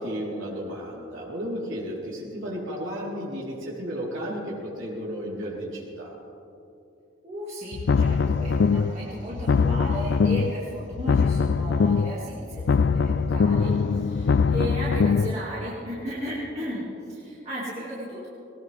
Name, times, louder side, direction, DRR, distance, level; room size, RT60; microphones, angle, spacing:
voice 1, 0.0-6.1, equal, 75° right, -5 dB, 4.1 m, -33 dB
voice 2, 7.2-18.3, equal, 30° right, -7 dB, 2.3 m, -35 dB
sound 1, 7.7-9.0 9.3-10.6 10.9-12.2 12.5-15.3, left 5 dB, 55° left, 0.3 m, -22 dB
20.0 x 19.0 x 3.5 m, 2.8 s
head